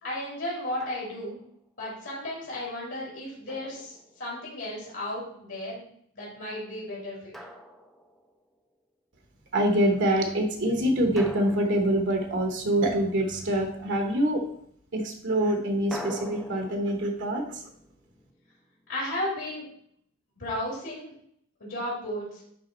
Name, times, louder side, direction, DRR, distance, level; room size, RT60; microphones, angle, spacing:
voice 1, 0.0-1.4 1.8-5.8 6.1-7.3 18.9-19.6 20.4-21.1 21.6-22.4, left 1 dB, 60° left, -5 dB, 3.1 m, -34 dB
Drum, 0.8-1.5 3.5-4.6 7.3-8.5 11.2-12.8 15.9-18.9, left 1 dB, ahead, 0.6 m, -44 dB
voice 2, 9.5-14.4 14.9-17.7, right 1 dB, 55° right, 3 dB, 1.0 m, -25 dB
10.5 x 3.5 x 4.2 m, 0.67 s
head